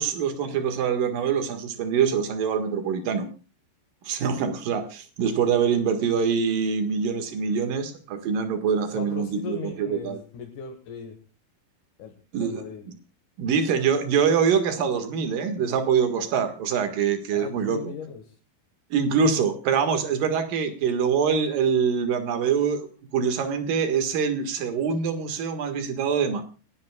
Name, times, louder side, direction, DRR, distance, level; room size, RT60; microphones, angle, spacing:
voice 1, 0.0-3.3 4.0-10.2 12.3-13.0 13.4-17.9 18.9-22.9 23.1-26.4, right 6 dB, 65° right, 7 dB, 3.3 m, -24 dB
voice 2, 8.9-11.2 12.0-12.1 12.4-12.8 17.3-18.2, left 6 dB, 60° left, 3 dB, 2.8 m, -38 dB
29.5 x 11.0 x 2.3 m, 0.35 s
omnidirectional pair, 4.5 m